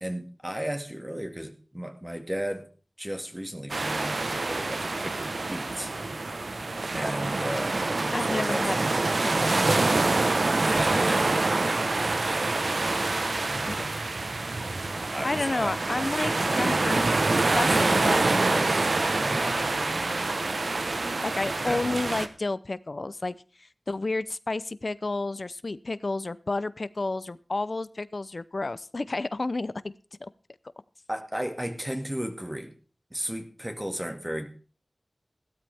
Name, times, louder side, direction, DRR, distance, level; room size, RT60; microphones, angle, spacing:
voice 1, 0.0-2.7 3.0-5.9 6.9-7.8 8.1-8.7 10.6-11.3 13.4-13.9 14.9-15.8 19.1-19.6 21.6-21.8 31.1-32.7 33.1-34.5, equal, 15° right, 5 dB, 2.0 m, -34 dB
sound 1, 3.7-22.3, right 2 dB, 80° right, 1.1 m, -26 dB
voice 2, 8.1-8.8 9.2-10.2 13.6-13.8 15.2-17.0 17.5-18.9 21.2-23.4 23.9-29.9 30.2-30.3, left 2 dB, 60° left, 17 dB, 0.6 m, -31 dB
16.0 x 12.5 x 3.5 m, 0.38 s
wide cardioid pair, 50°, 0 cm